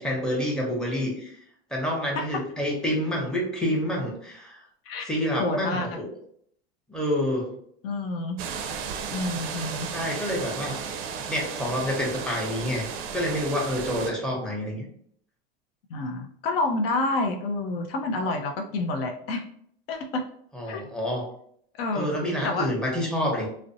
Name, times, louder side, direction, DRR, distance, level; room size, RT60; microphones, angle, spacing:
voice 1, 0.0-1.3 1.7-4.6 5.1-6.1 6.9-7.5 9.9-10.8 11.3-12.9 13.1-14.8 20.5-21.2 21.9-23.5, equal, ahead, -3 dB, 0.8 m, -28 dB
voice 2, 5.4-5.9 7.8-8.4 9.1-10.3 15.9-19.4 19.9-20.3 20.7-20.8 21.8-22.1 22.4-22.7, left 2 dB, 70° left, 4 dB, 0.5 m, -29 dB
sound 1, 8.4-14.1, right 6 dB, 45° right, 0.4 m, -34 dB
2.4 x 2.0 x 2.6 m, 0.66 s
hypercardioid pair, 95°, 30 cm